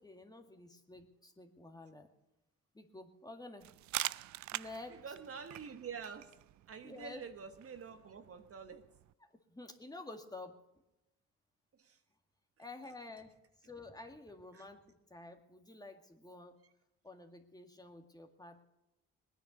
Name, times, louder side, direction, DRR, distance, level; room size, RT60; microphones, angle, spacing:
voice 1, 0.0-2.1 2.7-3.7 4.5-5.0 6.8-7.2 9.2-10.5 12.6-13.3 13.6-16.6 17.0-18.6, left 2 dB, 15° left, 5 dB, 2.0 m, -50 dB
sound 1, 3.6-9.1, right 16 dB, 70° right, 0.5 m, -45 dB
voice 2, 4.9-6.4 6.7-8.9 11.7-12.0 14.5-14.6 16.6-16.7, right 6 dB, 50° right, 8 dB, 1.4 m, -47 dB
19.5 x 10.0 x 6.6 m, 0.93 s
cardioid pair, 90°, 30 cm